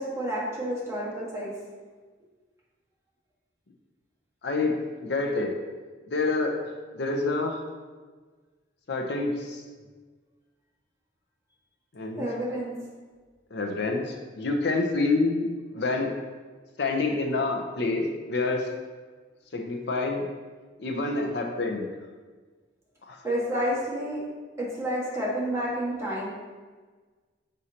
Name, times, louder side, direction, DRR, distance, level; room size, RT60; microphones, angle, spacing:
voice 1, 0.0-1.5 12.2-12.7 23.2-24.2 24.6-26.3, equal, 15° right, -7 dB, 1.7 m, -29 dB
voice 2, 4.4-5.5 6.1-6.6 6.9-7.6 8.9-9.6 11.9-12.3 13.5-16.2 16.8-18.7 19.5-20.3 20.8-21.9 23.1-23.2, left 3 dB, 65° left, 3 dB, 0.7 m, -27 dB
6.3 x 5.5 x 2.9 m, 1.4 s
head